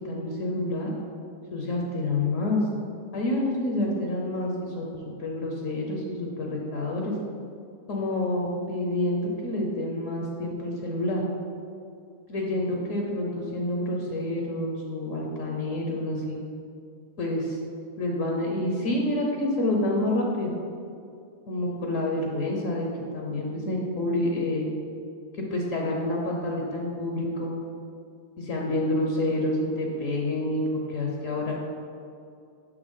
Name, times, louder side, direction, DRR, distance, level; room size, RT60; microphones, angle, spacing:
voice 1, 0.1-0.9 1.5-2.6 3.1-7.1 7.9-11.2 12.3-16.4 17.2-17.6 18.0-20.5 21.5-22.9 23.1-24.7 25.5-27.5 28.4-30.6 30.9-31.5, left 1 dB, 65° left, -1 dB, 1.1 m, -28 dB
6.6 x 5.2 x 3.7 m, 2.4 s
omnidirectional pair, 1.6 m